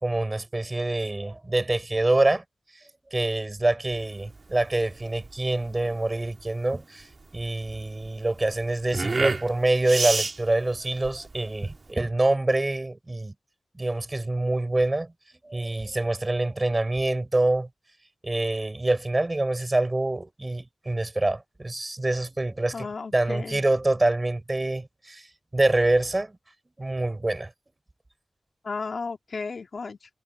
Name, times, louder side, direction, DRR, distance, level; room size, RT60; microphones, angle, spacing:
voice 1, 0.0-2.4 3.1-7.1 7.3-13.3 13.8-15.1 15.4-17.7 18.2-25.3 25.5-26.3 26.8-27.5, right 2 dB, 30° right, 5.0 m, -25 dB
sound 1, 3.9-11.9, right 3 dB, 50° right, 1.9 m, -31 dB
voice 2, 22.7-23.6 28.6-30.0, left 4 dB, 65° left, 2.4 m, -34 dB
cardioid pair, 50°, 0 cm